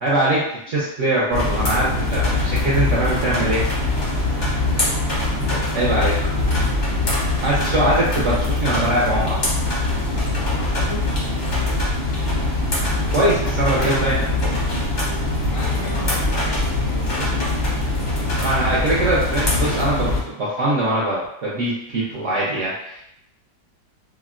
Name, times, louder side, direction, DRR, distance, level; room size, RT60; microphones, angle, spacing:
voice 1, 0.0-3.7 5.7-6.2 7.4-9.4 13.1-14.4 18.2-23.0, right 1 dB, 60° right, -7 dB, 0.8 m, -22 dB
sound 1, 1.3-20.2, left 2 dB, 40° left, 0.6 m, -22 dB
voice 2, 10.4-11.1 15.5-18.3 18.6-18.9, left 2 dB, 85° left, -4 dB, 1.5 m, -36 dB
3.5 x 2.1 x 2.4 m, 0.77 s
omnidirectional pair, 1.9 m